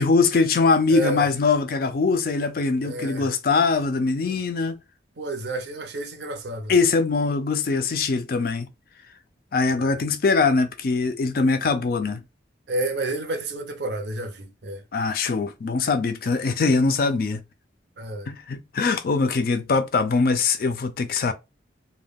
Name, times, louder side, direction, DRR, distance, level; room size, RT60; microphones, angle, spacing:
voice 1, 0.0-4.8 6.7-8.7 9.5-12.2 14.9-17.4 18.3-21.3, left 4 dB, 50° left, 0.3 m, -22 dB
voice 2, 0.9-1.3 2.8-3.3 4.3-4.4 5.2-6.7 9.8-10.0 12.7-14.8 18.0-18.3, right 2 dB, 65° right, 0.6 m, -30 dB
2.2 x 2.2 x 3.4 m
head